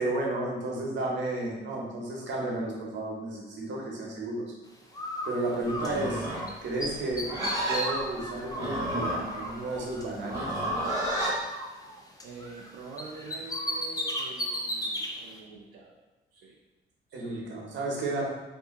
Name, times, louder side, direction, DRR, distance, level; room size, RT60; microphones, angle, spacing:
voice 1, 0.0-4.4 5.2-6.3 6.6-7.3 7.6-10.6 17.1-18.3, right 2 dB, 65° right, -1 dB, 0.9 m, -32 dB
Bird, 4.9-6.5 6.8-10.2 10.6-12.7 13.0-15.1, equal, 20° left, 0.5 m, -35 dB
voice 2, 5.4-5.8 6.9-7.0 12.2-16.0 16.3-16.6 17.1-17.5, right 4 dB, 80° right, -5 dB, 0.5 m, -46 dB
Livestock farm animals working animals, 5.7-11.4, right 1 dB, 15° right, 1.1 m, -32 dB
2.7 x 2.6 x 3.7 m, 1.1 s
cardioid pair, 90°, 20 cm